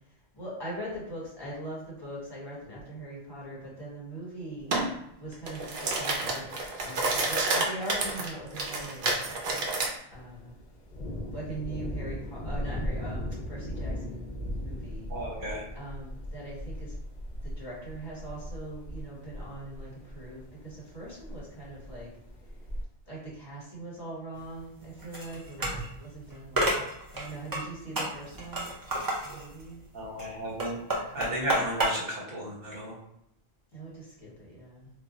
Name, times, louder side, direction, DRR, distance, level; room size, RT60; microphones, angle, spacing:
voice 1, 0.3-4.7 5.2-6.5 6.8-9.3 10.1-10.5 11.2-14.3 14.6-15.1 15.7-16.9 17.4-22.1 23.1-26.8 27.1-28.7 29.2-29.8 31.1-31.5 33.7-34.9, right 1 dB, 25° left, -7 dB, 1.1 m, -41 dB
sound 1, 4.7-4.9 5.3-9.9, right 2 dB, 65° right, 0.7 m, -29 dB
Thunder, 10.1-22.8, equal, 55° left, 0.6 m, -38 dB
voice 2, 15.1-15.6 29.9-33.0, equal, 45° right, -4 dB, 1.1 m, -34 dB
sound 2, 24.4-31.9, right 1 dB, 30° right, 0.4 m, -32 dB
2.2 x 2.1 x 3.9 m, 0.79 s
omnidirectional pair, 1.1 m